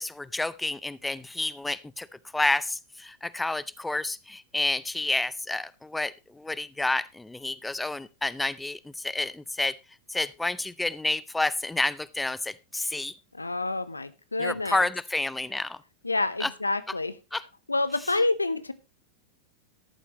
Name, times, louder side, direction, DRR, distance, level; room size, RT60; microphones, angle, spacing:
voice 1, 0.0-2.1 2.3-9.7 10.1-13.1 14.4-15.8 16.4-16.5 17.3-17.4, left 2 dB, 5° left, 19 dB, 0.5 m, -29 dB
voice 2, 13.3-14.9 16.0-17.1 17.7-18.7, left 2 dB, 80° left, 15 dB, 0.8 m, -28 dB
14.0 x 11.5 x 3.0 m, 0.25 s
figure-of-eight pair, 90°, 0 cm